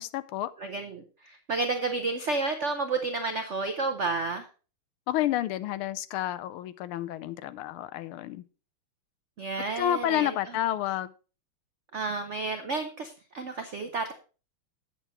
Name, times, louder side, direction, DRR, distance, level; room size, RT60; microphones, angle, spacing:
voice 1, 0.0-0.5 5.1-8.4 9.8-11.1, left 12 dB, 80° left, 15 dB, 1.5 m, -30 dB
voice 2, 0.6-4.5 9.4-10.3 11.9-14.1, right 3 dB, 85° right, 6 dB, 0.6 m, -31 dB
8.4 x 7.1 x 4.2 m, 0.35 s
omnidirectional pair, 2.4 m